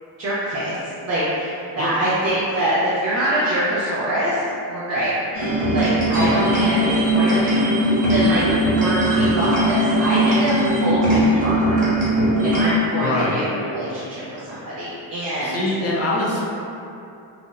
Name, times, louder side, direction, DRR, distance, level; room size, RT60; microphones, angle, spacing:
voice 1, 0.2-0.8 1.0-4.4 4.7-5.1 5.7-11.9 12.4-15.6, right 1 dB, 35° right, -10 dB, 0.5 m, -24 dB
sound 1, 5.3-12.6, right 1 dB, 20° right, 1.2 m, -19 dB
voice 2, 13.0-13.4 15.4-16.4, left 1 dB, 35° left, -4 dB, 0.6 m, -23 dB
2.6 x 2.1 x 2.2 m, 2.7 s
cardioid pair, 95°, 44 cm